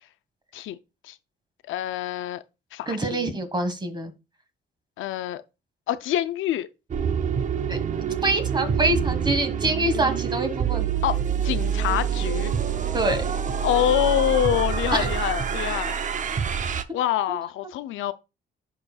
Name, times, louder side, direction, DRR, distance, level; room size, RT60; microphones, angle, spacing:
voice 1, 1.7-2.4 2.7-3.3 5.0-5.4 5.9-6.7 11.0-12.5 13.6-15.9 16.9-18.1, left 12 dB, 80° left, 0.5 m, -26 dB
voice 2, 2.9-4.1 7.7-7.8 8.2-10.9 12.9-13.2 14.9-15.1, right 2 dB, 20° right, 1.6 m, -25 dB
sound 1, 6.9-16.8, right 7 dB, 40° right, 0.6 m, -26 dB
11.5 x 4.3 x 2.3 m
cardioid pair, 90°, 20 cm